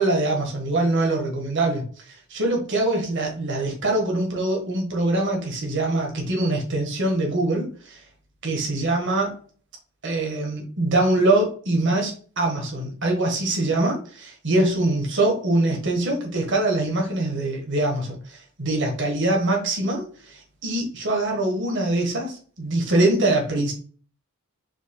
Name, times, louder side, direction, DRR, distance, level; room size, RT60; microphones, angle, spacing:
voice 1, 0.0-8.0 8.4-9.4 10.0-23.7, right 2 dB, 55° right, 1 dB, 1.5 m, -23 dB
4.7 x 4.7 x 2.3 m, 0.42 s
head